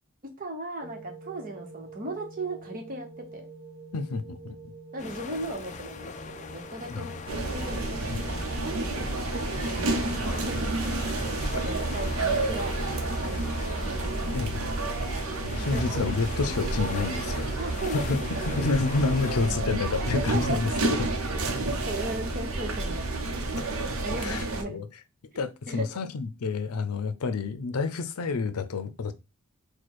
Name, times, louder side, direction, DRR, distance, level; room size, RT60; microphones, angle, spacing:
voice 1, 0.4-3.1 3.3-3.5 4.9-7.2 7.5-8.5 9.6-11.0 11.6-12.7 13.2-14.5 15.5-16.0 17.6-18.5 20.1-20.6 21.3-23.1 24.0-24.8 25.7-25.9, right 2 dB, 40° right, 1.1 m, -37 dB
sound 1, 0.8-18.9, right 3 dB, 5° left, 1.6 m, -48 dB
voice 2, 3.9-4.6 6.9-7.2 8.1-8.4 14.3-14.8 15.1-17.5 17.9-18.2 18.5-21.1 23.6-23.7 24.2-24.9 25.4-29.1, left 4 dB, 90° left, 0.5 m, -29 dB
sound 2, 5.0-19.5, left 5 dB, 35° left, 0.4 m, -41 dB
sound 3, 7.3-24.6, right 2 dB, 70° right, 0.8 m, -30 dB
4.2 x 2.2 x 4.6 m
head